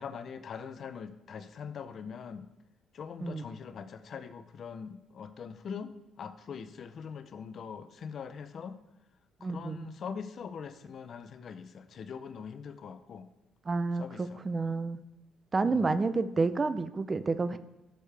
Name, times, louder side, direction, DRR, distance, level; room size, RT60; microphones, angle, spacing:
voice 1, 0.0-2.5 2.9-8.8 9.4-13.3 14.0-14.4 15.6-16.0, left 6 dB, 55° left, 11 dB, 0.6 m, -42 dB
voice 2, 9.4-9.9 13.7-15.0 15.5-17.6, right 3 dB, 30° right, 12 dB, 0.6 m, -30 dB
12.0 x 6.5 x 3.4 m, 0.96 s
cardioid pair, 105°, 0 cm